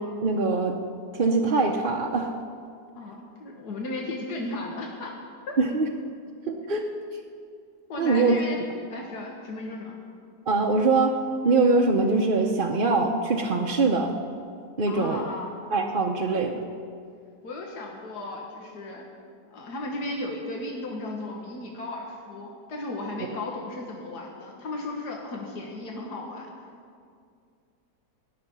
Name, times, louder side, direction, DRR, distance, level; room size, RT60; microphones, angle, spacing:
voice 1, 0.2-0.8 1.1-2.3 5.6-5.9 6.5-6.9 8.0-8.4 10.5-11.1 11.4-14.2 14.8-15.3 15.7-16.6, right 3 dB, 40° right, 0 dB, 0.8 m, -23 dB
voice 2, 2.9-5.1 5.5-5.6 7.9-8.6 8.9-9.9 14.9-15.6 17.4-19.0 19.5-26.5, left 2 dB, 90° left, -1 dB, 2.0 m, -35 dB
17.5 x 6.8 x 10.0 m, 2.3 s
omnidirectional pair, 1.7 m